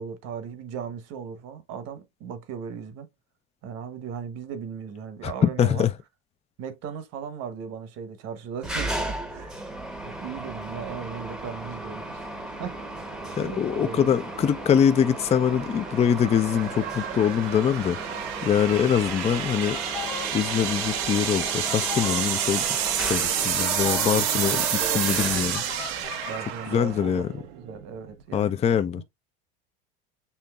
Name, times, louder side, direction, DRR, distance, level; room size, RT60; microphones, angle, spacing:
voice 1, 0.0-3.1 3.6-5.9 6.6-9.7 10.0-14.1 18.7-18.9 24.1-25.3 26.3-27.2 27.5-28.6 28.9-29.0, right 6 dB, 55° right, 1.1 m, -37 dB
voice 2, 5.2-5.9 13.4-18.0 18.4-19.8 20.3-22.6 23.0-25.6 26.7-27.3 28.3-29.0, left 8 dB, 20° left, 0.4 m, -23 dB
Mechanisms, 8.6-26.1, right 1 dB, ahead, 0.8 m, -36 dB
sound 1, 9.4-28.2, right 10 dB, 85° right, 0.9 m, -31 dB
sound 2, 18.7-26.5, left 9 dB, 85° left, 1.3 m, -40 dB
6.9 x 2.9 x 2.3 m
supercardioid pair, 100°, 30 cm